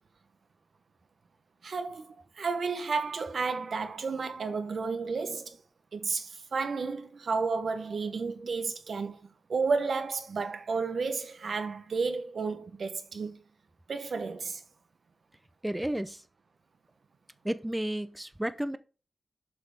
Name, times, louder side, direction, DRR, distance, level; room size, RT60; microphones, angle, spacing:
voice 1, 1.6-5.6 5.9-9.2 9.5-13.4 13.9-14.6, right 4 dB, 75° right, 1.2 m, -32 dB
voice 2, 15.6-16.2 17.4-18.8, right 1 dB, 10° right, 0.7 m, -32 dB
7.6 x 5.4 x 4.9 m
cardioid pair, 50°, 0 cm